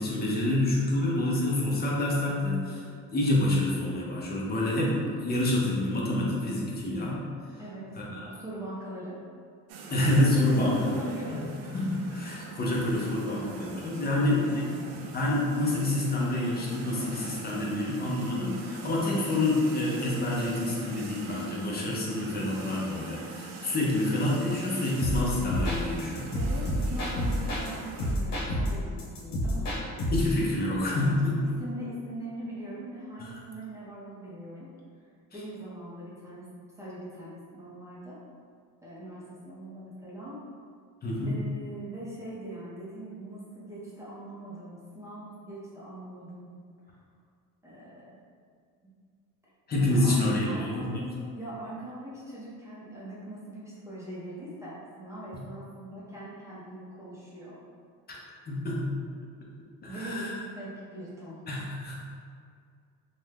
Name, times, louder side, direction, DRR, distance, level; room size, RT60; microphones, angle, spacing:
voice 1, 0.0-2.8 3.1-7.2 8.0-8.1 9.9-10.7 11.3-11.4 11.7-14.6 15.1-26.3 30.1-31.4 33.2-33.3 41.0-41.3 49.7-50.9 58.1-58.2 58.5-58.9 59.8-60.3 61.5-62.0, left 1 dB, 30° left, -4 dB, 0.7 m, -27 dB
voice 2, 7.6-9.2 10.4-11.8 14.1-15.0 26.3-29.7 31.0-34.7 35.3-36.5 36.8-38.2 38.8-40.4 41.2-46.5 46.9-47.0 47.6-48.2 49.8-57.6 59.8-61.7, right 1 dB, 10° right, -9 dB, 0.7 m, -41 dB
sound 1, 9.7-28.2, right 4 dB, 80° right, 0.5 m, -43 dB
sound 2, 25.0-27.7 28.0-30.3, equal, 75° left, 0.9 m, -29 dB
2.6 x 2.3 x 3.3 m, 2.2 s
cardioid pair, 125°, 34 cm